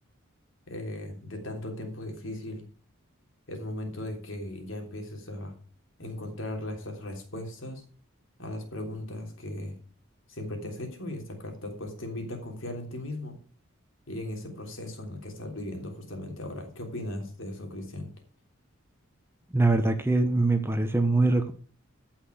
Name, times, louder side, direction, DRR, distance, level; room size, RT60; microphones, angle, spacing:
voice 1, 0.7-2.6 3.5-5.5 6.0-7.8 8.4-9.7 10.3-13.3 14.1-18.1, left 1 dB, 65° left, 3 dB, 3.5 m, -37 dB
voice 2, 19.5-21.5, right 2 dB, 10° right, 7 dB, 1.0 m, -23 dB
14.5 x 6.0 x 6.4 m, 0.41 s
head